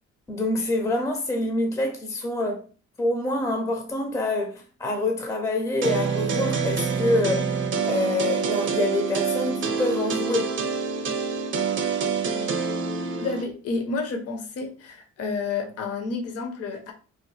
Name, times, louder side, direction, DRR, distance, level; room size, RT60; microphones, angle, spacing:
voice 1, 0.3-2.6 3.0-7.5 7.8-10.5, left 2 dB, 10° left, 0.5 m, -26 dB
sound 1, 5.8-13.4, right 5 dB, 40° right, 0.6 m, -26 dB
voice 2, 13.2-16.9, left 4 dB, 55° left, 0.7 m, -30 dB
2.9 x 2.1 x 3.1 m
cardioid pair, 90°, 30 cm